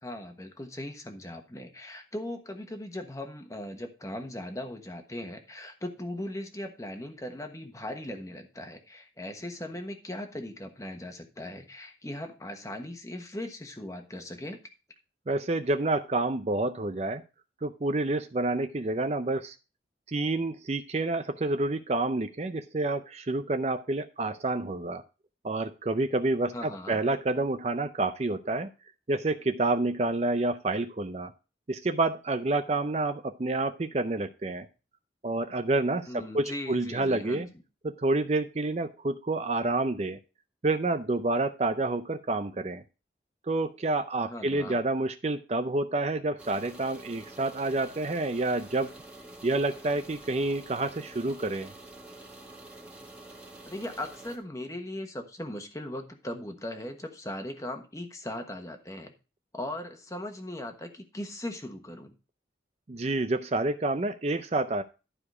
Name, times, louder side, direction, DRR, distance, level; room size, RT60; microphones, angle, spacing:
voice 1, 0.0-14.6 26.5-27.0 36.1-37.5 44.2-44.8 53.6-59.1 59.5-62.1, left 1 dB, 20° left, 5 dB, 1.2 m, -39 dB
voice 2, 15.3-17.2 17.6-19.6 20.1-25.0 25.4-28.7 29.1-31.3 31.7-34.7 35.2-37.5 37.8-40.2 40.6-42.8 43.5-48.9 49.4-51.7 62.9-64.8, right 2 dB, 35° right, 9 dB, 0.5 m, -28 dB
sound 1, 46.4-54.4, right 2 dB, 5° right, 1.6 m, -48 dB
12.0 x 4.9 x 4.8 m, 0.32 s
head